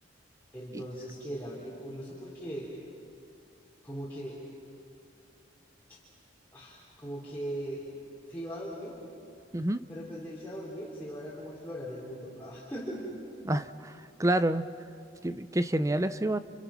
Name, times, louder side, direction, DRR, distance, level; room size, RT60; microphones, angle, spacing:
voice 1, 0.5-2.7 3.8-4.4 5.9-6.0 6.5-7.8 8.3-9.0 9.9-13.0, equal, 10° left, -7 dB, 3.8 m, -39 dB
voice 2, 13.4-14.6 15.2-16.4, right 1 dB, 15° right, 12 dB, 0.6 m, -28 dB
30.0 x 29.5 x 6.0 m, 2.6 s
head